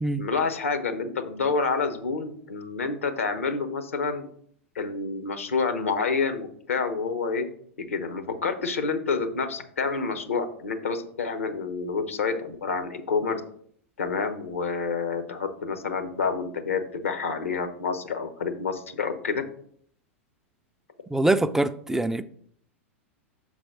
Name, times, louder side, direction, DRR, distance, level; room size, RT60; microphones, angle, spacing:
voice 1, 0.2-4.3 4.7-7.5 7.9-13.4 14.0-19.4, left 4 dB, 75° left, 1.0 m, -28 dB
voice 2, 21.1-22.2, right 2 dB, 5° right, 0.3 m, -24 dB
6.3 x 4.0 x 6.1 m
figure-of-eight pair, 90°, 7 cm